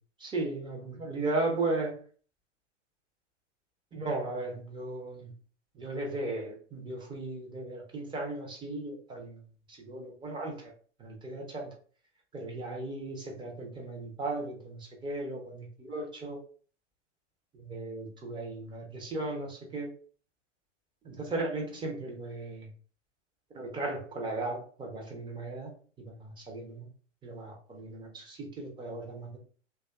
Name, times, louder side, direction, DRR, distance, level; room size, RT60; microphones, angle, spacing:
voice 1, 0.2-2.0 3.9-5.3 5.8-9.4 9.7-10.7 11.0-11.7 12.3-16.4 17.5-19.9 21.0-22.7 23.5-25.7 26.0-26.9 27.2-29.3, right 2 dB, 15° right, 0 dB, 0.5 m, -36 dB
2.4 x 2.3 x 2.2 m, 0.43 s
hypercardioid pair, 105°, 36 cm